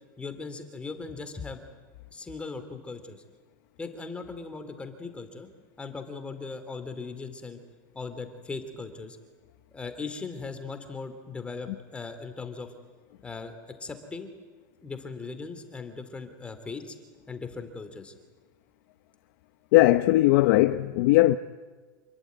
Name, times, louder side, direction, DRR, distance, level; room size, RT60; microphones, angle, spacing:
voice 1, 0.2-1.6 2.1-3.2 3.8-5.5 5.8-7.6 7.9-9.2 9.7-12.7 13.2-14.3 14.8-16.9 17.3-18.1, left 4 dB, 10° left, 2.7 m, -38 dB
voice 2, 19.7-21.3, left 17 dB, 60° left, 0.9 m, -19 dB
27.5 x 22.0 x 9.3 m
supercardioid pair, 155°, 11 cm